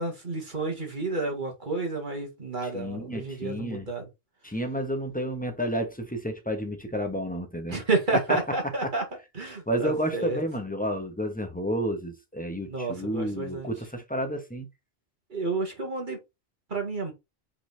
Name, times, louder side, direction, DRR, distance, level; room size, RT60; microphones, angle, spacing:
voice 1, 0.0-4.1 7.7-9.0 9.3-10.4 12.7-13.7 15.3-16.2 16.7-17.1, right 3 dB, 45° right, 2.4 m, -30 dB
voice 2, 2.7-3.9 4.4-7.8 8.3-8.4 9.7-14.7, equal, 10° left, 1.3 m, -31 dB
5.5 x 4.2 x 4.1 m
omnidirectional pair, 1.1 m